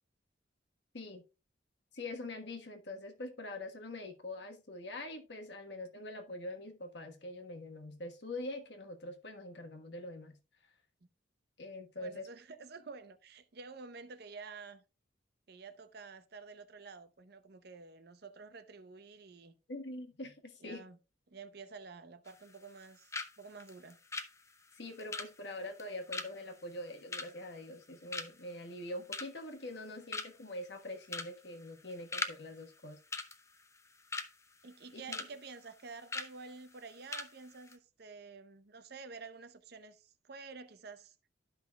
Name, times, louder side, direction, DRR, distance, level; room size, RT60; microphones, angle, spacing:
voice 1, 1.9-10.4 11.6-12.3 19.7-20.8 24.7-33.0 34.9-35.2, left 1 dB, 60° left, 1.3 m, -44 dB
voice 2, 12.0-14.8 15.5-19.6 20.6-21.0 21.3-24.0 34.6-41.2, right 4 dB, 55° right, 0.7 m, -50 dB
sound 1, 22.3-22.9 23.1-23.3 23.6-27.8 28.1-28.5 28.9-29.5 29.8-29.9 30.1-30.5 31.1-31.3 31.6-32.4 32.6-32.8 33.1-34.3 34.7-35.3 35.6-35.7 36.1-36.3 36.7-36.8 37.1-37.3 37.6-37.7, left 3 dB, 15° left, 0.5 m, -40 dB
13.0 x 5.7 x 2.3 m
head